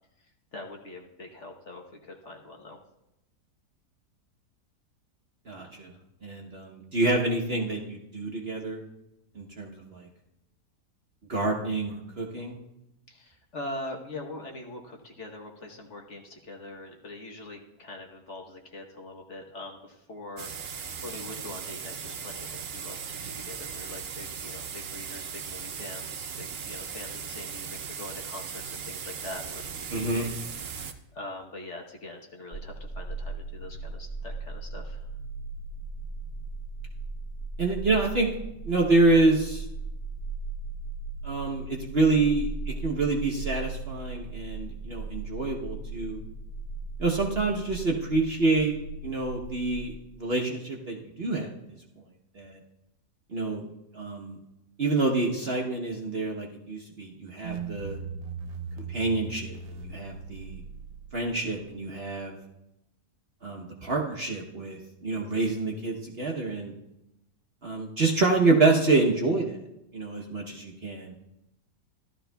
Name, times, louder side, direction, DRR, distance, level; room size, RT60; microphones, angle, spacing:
voice 1, 0.5-2.8 13.1-29.6 30.0-30.3 30.6-35.1, left 2 dB, 50° left, 1 dB, 1.3 m, -43 dB
voice 2, 5.5-5.9 6.2-8.8 9.3-10.1 11.3-12.6 29.9-30.3 37.6-38.3 38.7-39.6 41.2-46.2 47.0-48.7 49.0-51.5 52.3-52.6 53.3-53.6 53.9-54.4 54.8-58.0 58.9-60.6 61.1-62.4 63.4-66.7 67.6-69.5 69.9-71.1, right 3 dB, 45° right, 0 dB, 1.0 m, -27 dB
sound 1, 20.4-30.9, right 7 dB, 60° right, 0.6 m, -38 dB
sound 2, 32.5-49.9, right 3 dB, 65° left, 3.3 m, -37 dB
sound 3, 57.4-61.7, right 5 dB, 85° right, 1.3 m, -39 dB
15.0 x 12.5 x 2.3 m, 0.90 s
omnidirectional pair, 1.8 m